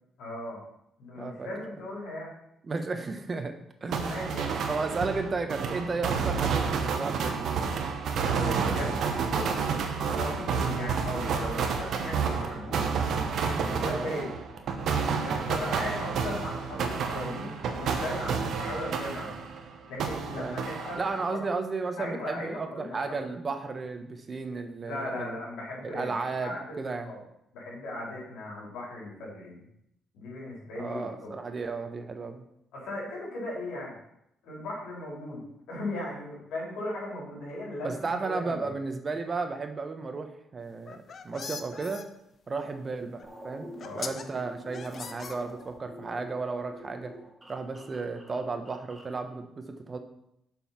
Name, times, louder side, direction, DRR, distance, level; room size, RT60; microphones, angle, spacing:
voice 1, 0.2-0.6 1.0-2.3 4.0-4.6 8.3-9.7 10.0-12.9 13.6-14.3 15.2-19.3 19.9-21.0 21.3-21.4 22.0-23.3 24.8-26.8 27.0-27.2 27.5-29.6 30.1-31.3 32.7-34.0 34.4-35.4 35.7-38.8 43.8-44.1, left 1 dB, 85° left, -4 dB, 3.9 m, -37 dB
voice 2, 1.2-1.5 2.6-3.5 3.8-4.3 4.7-7.5 13.8-14.1 20.4-20.6 21.0-25.4 25.8-27.1 30.8-32.4 37.8-42.0 42.5-43.7 43.9-47.1 47.5-50.0, right 4 dB, 35° right, 6 dB, 1.1 m, -34 dB
sound 1, 3.9-19.6 20.0-21.3, right 5 dB, 70° right, 1.1 m, -30 dB
sound 2, 40.7-42.0 43.2-43.3 43.8-44.2 44.7-45.8, left 5 dB, 50° left, 0.8 m, -40 dB
sound 3, 43.2-49.2, right 1 dB, 15° right, 2.1 m, -48 dB
7.2 x 5.6 x 5.8 m, 0.79 s
cardioid pair, 90°, 0 cm